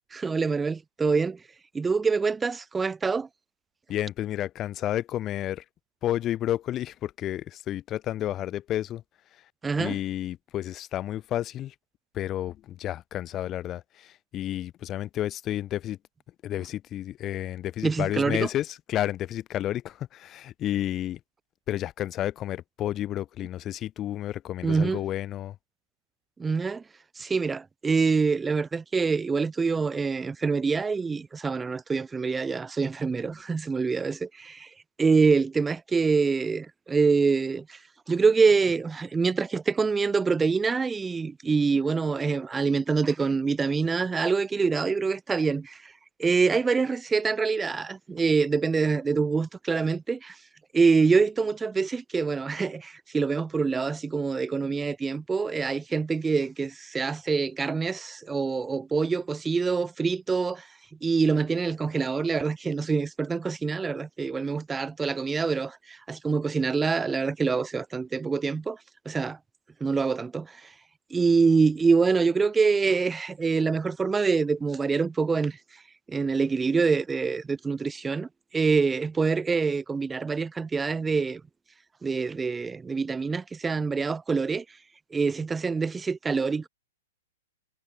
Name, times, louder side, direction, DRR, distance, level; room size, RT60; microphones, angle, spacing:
voice 1, 0.1-1.4 1.7-3.3 9.6-10.0 17.8-18.5 24.6-25.0 26.4-26.8 27.2-34.7 35.0-37.8 38.1-45.9 46.2-50.4 50.7-60.7 61.0-68.8 69.1-69.4 69.8-70.7 71.1-75.6 76.1-78.3 78.5-81.4 82.0-84.6 85.1-86.7, right 4 dB, 10° right, 0.7 m, -25 dB
voice 2, 3.9-5.6 6.0-9.0 9.8-11.7 12.1-16.0 16.4-21.2 21.7-25.5, left 12 dB, 30° left, 1.1 m, -31 dB
hypercardioid pair, 125°, 0 cm